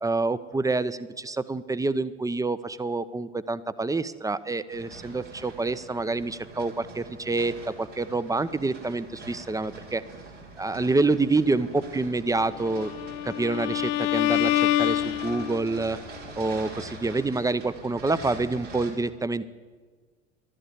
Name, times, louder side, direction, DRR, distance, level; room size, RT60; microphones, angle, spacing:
voice 1, 0.0-10.0 10.6-12.9 13.2-16.0 16.4-19.5, right 3 dB, 10° right, 15 dB, 0.6 m, -27 dB
sound 1, 4.7-18.9, right 3 dB, 85° right, 3.3 m, -44 dB
Bowed string instrument, 12.7-15.8, left 13 dB, 55° left, 0.6 m, -26 dB
12.5 x 9.9 x 9.4 m, 1.5 s
figure-of-eight pair, 60°, 36 cm